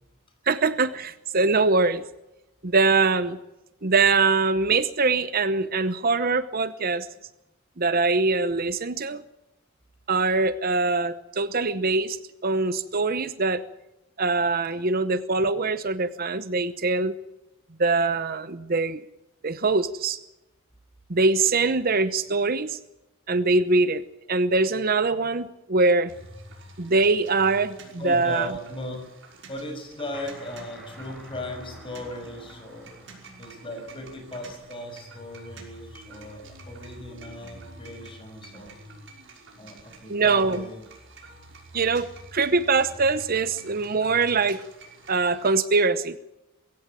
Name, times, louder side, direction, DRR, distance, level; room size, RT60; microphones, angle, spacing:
voice 1, 0.5-2.0 2.6-3.4 3.8-7.1 7.8-9.2 10.1-12.2 12.4-13.6 14.2-17.2 17.8-19.0 19.4-20.2 21.1-22.8 23.3-24.0 24.3-26.1 26.8-27.8 28.0-28.5 40.1-40.6 41.7-44.6 45.1-46.2, right 3 dB, 45° right, 14 dB, 0.9 m, -23 dB
sound 1, 26.1-45.5, right 2 dB, 65° right, 5.9 m, -47 dB
voice 2, 28.0-29.0 29.5-32.9 33.4-38.7 39.6-40.8, left 1 dB, 25° left, 5 dB, 6.1 m, -37 dB
sound 2, 30.1-35.6, equal, ahead, 7.0 m, -50 dB
22.0 x 16.0 x 9.0 m, 0.94 s
head